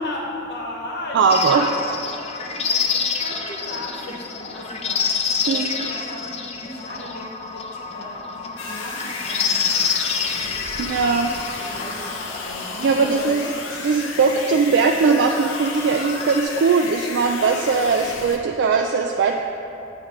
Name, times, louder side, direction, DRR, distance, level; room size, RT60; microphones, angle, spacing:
voice 1, 0.0-10.4 11.7-13.4, left 1 dB, 60° left, -2 dB, 1.1 m, -36 dB
voice 2, 1.1-1.6 5.5-5.9 10.8-11.4 12.8-13.4 13.8-19.3, right 5 dB, 60° right, 2 dB, 0.3 m, -19 dB
sound 1, 1.3-16.4, left 6 dB, 30° left, 0.4 m, -28 dB
sound 2, 8.6-18.4, left 4 dB, 75° left, 0.6 m, -33 dB
8.6 x 3.2 x 5.0 m, 2.8 s
head